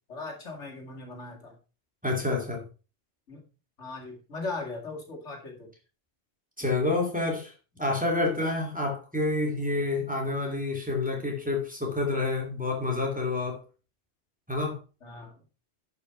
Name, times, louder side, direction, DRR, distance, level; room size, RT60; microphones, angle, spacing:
voice 1, 0.1-1.6 3.3-3.4 3.8-5.7 6.6-6.8 15.0-15.4, left 3 dB, 70° left, 1 dB, 2.6 m, -39 dB
voice 2, 2.0-2.6 6.6-13.6 14.5-14.8, left 2 dB, 5° right, 0 dB, 2.7 m, -28 dB
11.5 x 5.6 x 4.5 m, 0.33 s
omnidirectional pair, 1.2 m